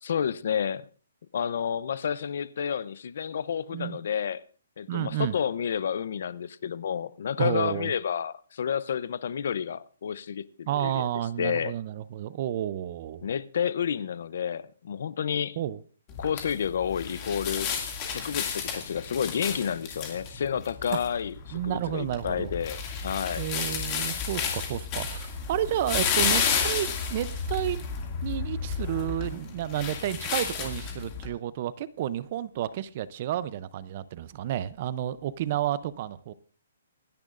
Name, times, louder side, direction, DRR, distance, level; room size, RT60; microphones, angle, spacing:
voice 1, 0.0-0.9 1.3-4.4 4.8-11.1 11.4-11.7 13.2-15.6 16.2-17.7 18.0-23.4, left 8 dB, 55° left, 0.6 m, -30 dB
voice 2, 4.9-5.3 7.4-7.9 10.7-13.3 15.6-15.8 21.5-22.5 23.4-27.8 28.2-36.3, right 12 dB, 35° right, 0.5 m, -31 dB
sound 1, 16.1-31.3, left 6 dB, 25° left, 2.2 m, -32 dB
26.5 x 10.5 x 2.5 m
hypercardioid pair, 170°, 0 cm